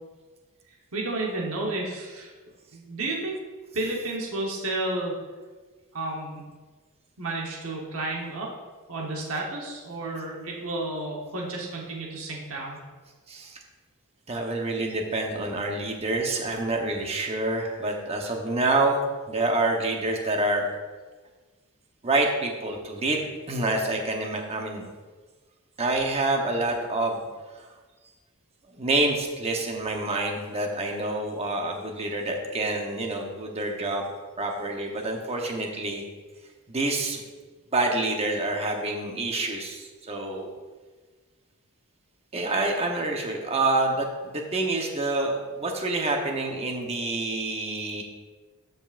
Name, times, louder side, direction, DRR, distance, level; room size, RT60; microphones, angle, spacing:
voice 1, 0.9-2.3 2.7-3.4 3.7-5.2 5.9-6.5 7.2-8.5 8.9-12.8, right 2 dB, 65° right, -2 dB, 1.2 m, -31 dB
voice 2, 13.3-13.6 14.3-20.7 22.0-24.9 25.8-27.2 27.6-27.7 28.7-34.1 34.4-36.0 36.7-37.2 37.7-40.5 42.3-48.0, right 2 dB, 30° right, 1 dB, 1.0 m, -27 dB
12.5 x 5.3 x 2.5 m, 1.4 s
head